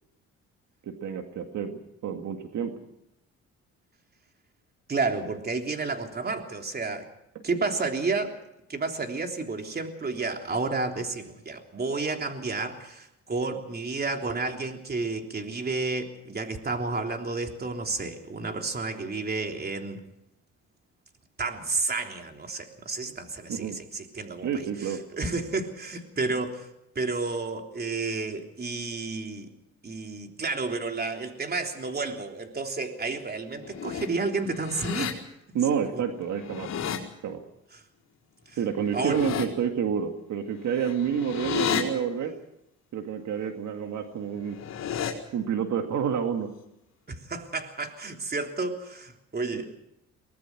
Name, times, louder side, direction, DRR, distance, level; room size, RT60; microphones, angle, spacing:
voice 1, 0.9-2.7 23.5-23.8 24.4-25.0 35.5-36.7 37.2-37.4 38.6-42.3 42.9-44.6 45.3-46.5 49.5-49.6, right 7 dB, 70° right, 5 dB, 2.2 m, -29 dB
voice 2, 4.9-7.1 7.4-8.4 8.7-20.0 21.4-26.7 27.0-29.5 29.8-35.2 35.9-36.0 37.7-37.8 38.5-38.6 38.9-39.2 47.1-49.8, right 3 dB, 30° right, 4 dB, 3.4 m, -31 dB
sound 1, 33.5-34.1 34.5-35.1 36.2-37.0 38.8-39.4 40.7-41.8 44.3-45.1, left 9 dB, 60° left, 4.7 m, -32 dB
24.0 x 19.0 x 6.0 m, 0.83 s
cardioid pair, 90°, 30 cm